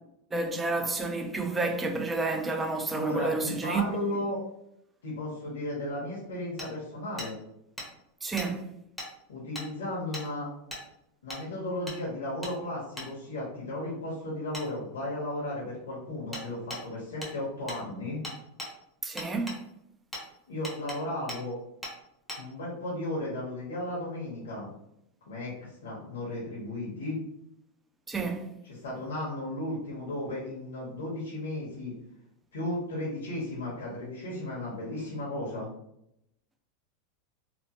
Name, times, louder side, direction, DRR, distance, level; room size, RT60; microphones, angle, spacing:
voice 1, 0.3-3.8 8.2-8.7 19.0-19.6 28.1-28.5, right 3 dB, 15° right, 0.4 m, -30 dB
voice 2, 2.9-4.4 5.0-7.3 9.3-10.5 11.2-18.2 20.5-21.6 22.4-24.7 25.3-27.2 28.6-32.0 32.5-35.7, left 1 dB, 85° left, 0.9 m, -35 dB
Hammer, 6.6-6.7 7.2-7.3 7.8-7.9 8.4-8.5 9.0-9.1 9.6-9.7 10.1-10.3 10.7-10.8 11.3-11.4 11.9-12.0 12.4-12.6 13.0-13.1 14.5-14.7 16.3-16.5 16.7-16.8 17.2-17.3 17.7-17.8 18.2-18.7 19.2-19.6 20.1-20.3 20.6-21.0 21.3-21.4 21.8-22.0 22.3-22.4, left 1 dB, 5° left, 0.8 m, -38 dB
2.9 x 2.0 x 2.8 m
hypercardioid pair, 115°, 0 cm